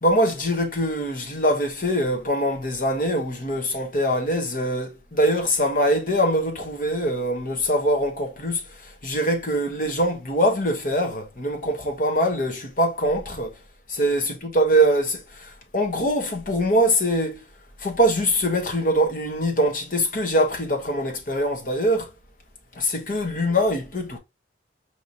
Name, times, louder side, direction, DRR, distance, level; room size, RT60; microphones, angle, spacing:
voice 1, 0.0-13.5 13.9-17.4 17.8-22.1 22.7-24.2, equal, 50° left, 1.1 m, -23 dB
4.5 x 3.0 x 2.6 m
head